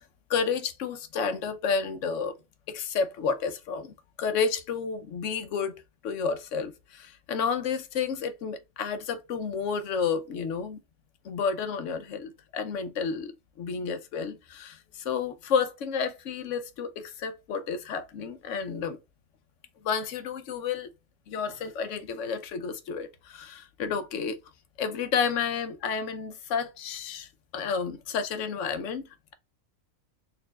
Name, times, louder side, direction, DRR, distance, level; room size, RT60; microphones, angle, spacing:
voice 1, 0.3-2.4 2.7-10.8 11.2-13.3 13.6-19.0 19.8-20.9 21.3-24.4 24.8-29.3, left 6 dB, 65° left, 1.0 m, -31 dB
4.2 x 3.8 x 2.3 m
omnidirectional pair, 1.5 m